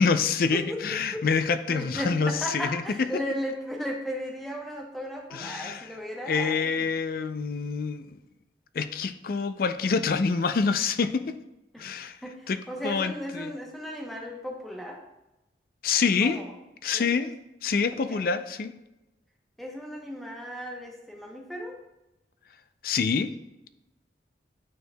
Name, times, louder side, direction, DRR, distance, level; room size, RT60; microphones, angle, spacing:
voice 1, 0.0-2.8 5.3-5.8 6.3-8.2 8.7-11.4 11.8-12.2 12.5-12.6 12.8-13.5 15.8-16.4 16.8-17.3 17.6-18.7 22.8-23.3, left 5 dB, 55° left, 11 dB, 0.4 m, -26 dB
voice 2, 0.5-1.3 1.7-6.6 11.7-12.0 12.2-15.0 16.2-16.6 16.9-17.1 18.1-18.4 19.6-21.8, equal, ahead, 0 dB, 0.8 m, -36 dB
9.2 x 4.6 x 2.2 m, 0.94 s
head